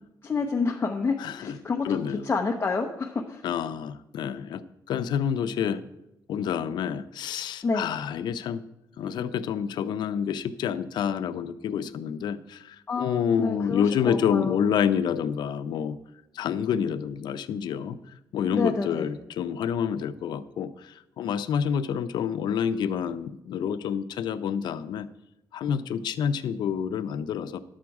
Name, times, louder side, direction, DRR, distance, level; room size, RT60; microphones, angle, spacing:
voice 1, 0.2-2.0 2.2-3.4 7.6-7.9 12.9-14.6 18.5-19.1, left 4 dB, 30° left, 0 dB, 0.9 m, -28 dB
voice 2, 1.2-1.6 1.8-2.3 3.4-5.8 6.3-8.7 9.0-16.0 16.3-18.0 18.3-25.1 25.5-27.6, left 8 dB, 85° left, 12 dB, 0.6 m, -28 dB
11.5 x 7.5 x 4.7 m, 0.92 s
cardioid pair, 120°, 7 cm